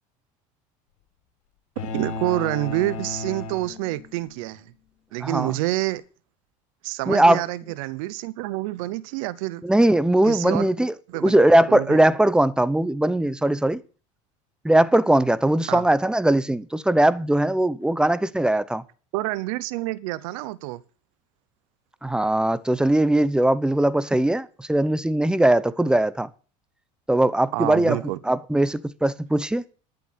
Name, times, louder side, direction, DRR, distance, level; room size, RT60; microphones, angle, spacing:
sound 1, 1.8-4.3, left 3 dB, 85° left, 4.0 m, -34 dB
voice 1, 1.9-4.6 5.1-6.0 6.8-9.6 10.3-10.7 11.1-11.4 11.7-12.0 15.7-15.8 19.1-20.8 27.5-28.2, right 18 dB, 80° right, 0.8 m, -27 dB
voice 2, 5.2-5.5 7.1-7.4 9.6-13.8 14.6-18.8 22.0-26.3 27.1-28.0 28.3-29.6, right 1 dB, 5° right, 0.8 m, -20 dB
11.0 x 7.9 x 8.5 m
supercardioid pair, 115°, 17 cm